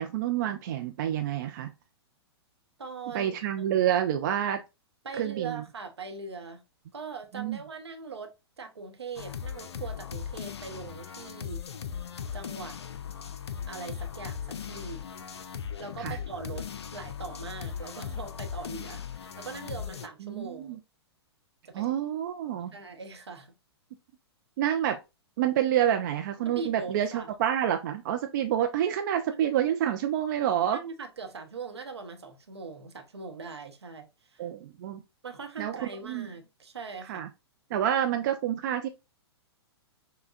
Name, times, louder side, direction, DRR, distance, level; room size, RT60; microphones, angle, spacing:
voice 1, 0.0-1.7 3.1-4.6 5.2-5.6 7.3-7.6 16.0-16.2 20.2-20.8 21.7-22.7 24.6-25.0 25.4-30.8 34.4-35.0 35.6-36.3 37.1-37.3 37.7-38.9, right 10 dB, 45° right, 0.4 m, -28 dB
voice 2, 2.8-3.4 5.0-6.6 6.9-8.3 8.6-11.6 12.3-12.8 13.7-15.1 15.8-16.7 16.9-20.8 21.6-21.9 22.7-23.5 26.5-27.3 29.3-29.5 30.7-34.5 35.2-37.3, right 4 dB, 75° right, 0.7 m, -41 dB
sound 1, 9.1-20.1, left 8 dB, 75° left, 0.4 m, -38 dB
5.4 x 2.2 x 2.4 m
figure-of-eight pair, 110°, 14 cm